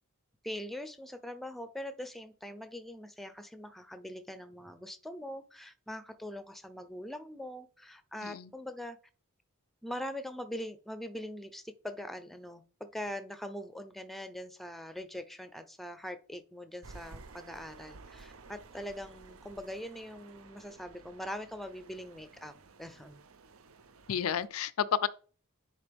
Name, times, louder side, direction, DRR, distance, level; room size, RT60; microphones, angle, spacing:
voice 1, 0.4-9.0 9.8-22.5 22.8-23.2, left 1 dB, ahead, 0.5 m, -42 dB
sound 1, 16.8-24.5, right 3 dB, 75° right, 0.7 m, -54 dB
voice 2, 24.1-25.1, left 8 dB, 80° left, 0.5 m, -31 dB
9.8 x 4.4 x 3.4 m
head